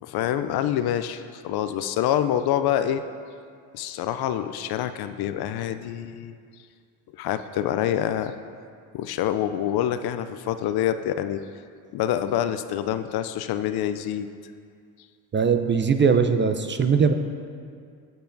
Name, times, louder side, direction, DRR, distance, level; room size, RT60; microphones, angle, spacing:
voice 1, 0.0-3.0 3.7-6.3 7.2-8.3 8.9-11.4 11.9-14.3, left 11 dB, 55° left, 11 dB, 0.5 m, -26 dB
voice 2, 15.3-17.1, right 6 dB, 25° right, 8 dB, 0.4 m, -20 dB
15.5 x 5.6 x 2.6 m, 2.2 s
hypercardioid pair, 60°, 47 cm